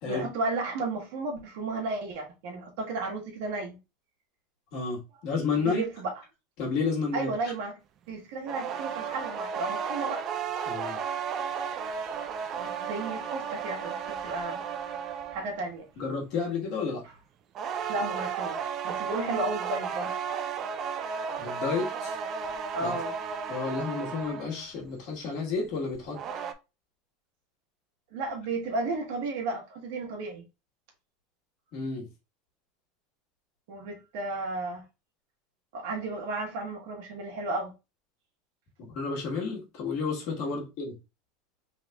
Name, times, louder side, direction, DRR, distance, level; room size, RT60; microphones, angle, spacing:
voice 1, 0.0-3.8 5.6-6.1 7.1-7.8 8.1-10.2 12.6-14.0 14.2-14.6 15.3-15.8 17.9-20.2 22.7-23.1 28.1-30.4 33.7-34.8 35.7-37.7, right 2 dB, 70° right, 1.4 m, -33 dB
voice 2, 4.7-5.8 6.6-7.3 10.6-11.0 16.0-17.0 21.4-22.2 22.8-22.9 23.5-26.2 31.7-32.1 38.8-40.9, left 4 dB, 50° left, 1.5 m, -31 dB
sound 1, 8.4-15.6 17.5-24.6 25.9-26.5, right 7 dB, 30° right, 0.4 m, -34 dB
3.5 x 2.5 x 3.3 m
supercardioid pair, 160°, 0 cm